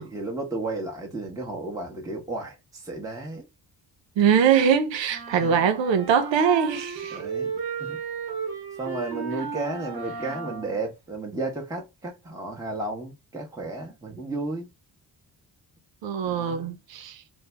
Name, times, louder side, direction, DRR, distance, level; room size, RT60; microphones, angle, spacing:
voice 1, 0.0-3.5 5.3-5.6 7.1-7.5 7.8-8.0 8.8-14.7 16.2-16.8, right 2 dB, 10° right, 0.8 m, -33 dB
voice 2, 4.2-7.2 16.0-17.2, right 7 dB, 85° right, 0.7 m, -22 dB
sound 1, 5.1-10.8, right 6 dB, 60° right, 1.0 m, -34 dB
2.6 x 2.0 x 3.3 m
cardioid pair, 60°, 43 cm